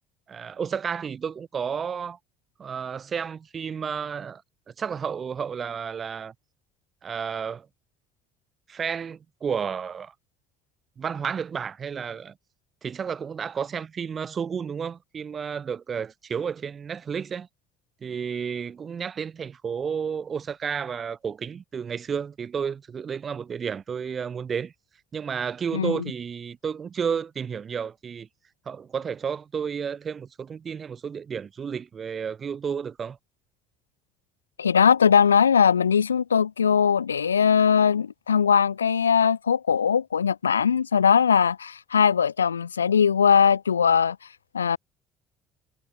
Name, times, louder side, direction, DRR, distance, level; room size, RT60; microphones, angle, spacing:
voice 1, 0.3-2.2 2.6-4.4 4.8-6.3 7.0-7.7 8.7-10.1 11.0-12.3 12.8-17.5 18.0-24.7 25.1-28.3 28.7-33.2, right 7 dB, 40° right, 2.6 m, -31 dB
voice 2, 34.6-44.2 44.5-44.8, left 7 dB, 80° left, 0.4 m, -20 dB
figure-of-eight pair, 50°, 0 cm